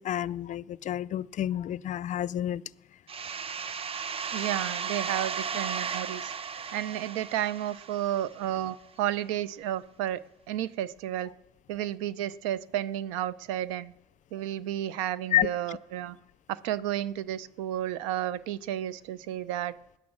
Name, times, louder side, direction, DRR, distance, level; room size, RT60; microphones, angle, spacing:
voice 1, 0.0-2.6 15.3-15.5, left 12 dB, 50° left, 0.5 m, -29 dB
sound 1, 3.1-8.6, right 6 dB, 35° right, 0.8 m, -35 dB
voice 2, 4.3-6.3 6.7-10.2 10.5-11.3 11.7-13.9 14.3-16.2 16.5-19.7, right 12 dB, 90° right, 0.6 m, -32 dB
17.5 x 10.0 x 7.4 m
supercardioid pair, 70°, 16 cm